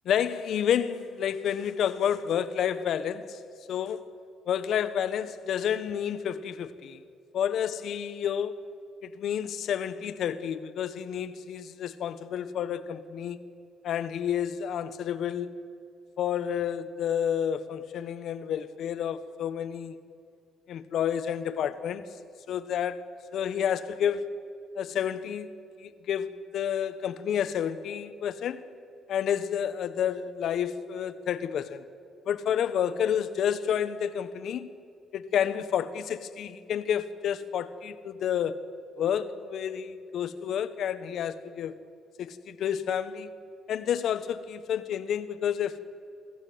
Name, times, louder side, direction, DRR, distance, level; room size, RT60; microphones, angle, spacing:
voice 1, 0.0-3.4 3.7-4.0 4.5-7.0 7.3-8.6 9.0-13.4 13.8-15.5 16.2-20.0 20.7-22.0 22.5-23.0 23.3-24.2 24.7-25.5 25.8-28.6 29.1-31.8 32.3-34.7 35.1-38.6 39.0-41.8 42.2-43.3 43.7-45.8, left 9 dB, 70° left, 1.1 m, -30 dB
24.0 x 14.0 x 9.4 m
cardioid pair, 90°, 0 cm